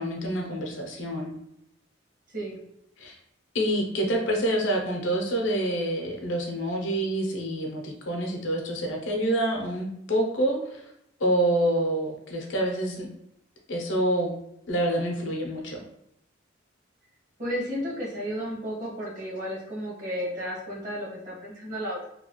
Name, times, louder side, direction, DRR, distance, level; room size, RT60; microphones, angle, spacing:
voice 1, 0.0-1.3 3.0-3.2 3.5-10.8 11.2-13.1 13.7-14.3 14.7-15.8, right 1 dB, 80° left, 1 dB, 0.7 m, -27 dB
voice 2, 17.4-22.1, equal, 45° right, -5 dB, 1.2 m, -33 dB
2.9 x 2.3 x 2.9 m, 0.78 s
head